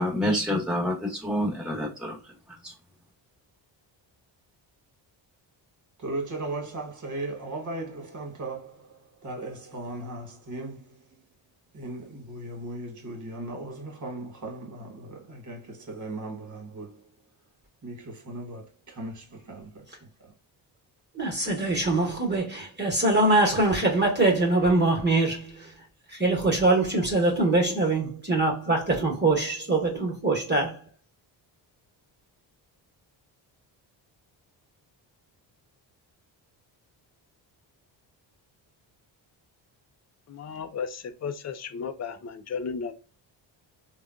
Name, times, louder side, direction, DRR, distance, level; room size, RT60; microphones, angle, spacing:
voice 1, 0.0-2.2 2.6-2.7, left 1 dB, ahead, 1.2 m, -27 dB
voice 2, 6.0-8.8 9.2-10.8 11.7-16.9 17.8-19.8, right 2 dB, 40° right, 1.5 m, -37 dB
voice 3, 21.1-25.7 26.1-30.8, right 2 dB, 20° right, 1.2 m, -23 dB
voice 4, 40.3-42.9, left 6 dB, 35° left, 0.5 m, -34 dB
3.5 x 2.3 x 2.5 m
cardioid pair, 75°, 46 cm